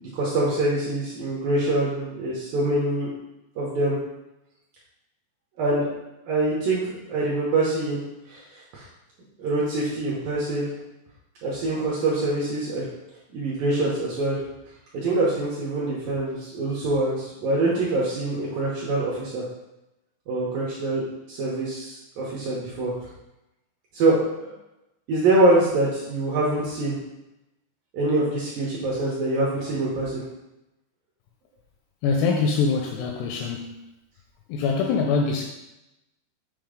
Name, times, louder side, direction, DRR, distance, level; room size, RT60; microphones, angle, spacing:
voice 1, 0.0-3.1 3.6-4.0 5.6-5.9 6.3-8.0 8.3-8.9 9.4-10.7 11.4-12.8 13.3-14.4 14.9-19.5 20.3-22.9 23.9-24.5 25.1-27.0 27.9-30.2, right 2 dB, 70° right, -5 dB, 2.2 m, -24 dB
voice 2, 32.0-33.7 34.5-35.5, left 4 dB, 85° left, 2 dB, 2.4 m, -23 dB
7.3 x 2.9 x 5.0 m, 0.93 s
omnidirectional pair, 5.2 m